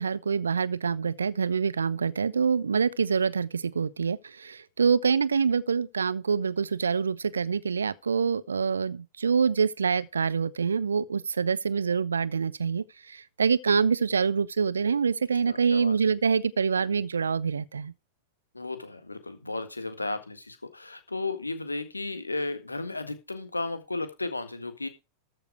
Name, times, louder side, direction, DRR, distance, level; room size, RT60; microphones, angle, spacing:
voice 1, 0.0-17.9, right 6 dB, 75° right, 0.6 m, -26 dB
voice 2, 15.5-15.9 18.5-24.9, left 2 dB, 80° left, 1.8 m, -34 dB
13.5 x 6.9 x 4.6 m
figure-of-eight pair, 90°, 0 cm